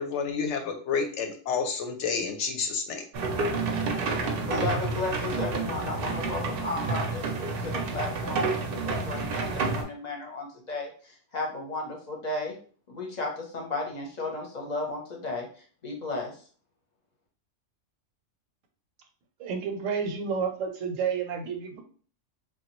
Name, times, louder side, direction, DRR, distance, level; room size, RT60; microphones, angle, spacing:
voice 1, 0.0-3.0, left 5 dB, 70° left, 5 dB, 0.8 m, -30 dB
sound 1, 3.1-9.8, right 3 dB, 60° right, 0.6 m, -29 dB
voice 2, 4.5-12.6 12.9-16.4, left 2 dB, 40° left, 0 dB, 0.7 m, -34 dB
voice 3, 19.4-21.8, right 6 dB, 85° right, 5 dB, 1.0 m, -30 dB
3.2 x 2.2 x 2.9 m, 0.43 s
omnidirectional pair, 1.3 m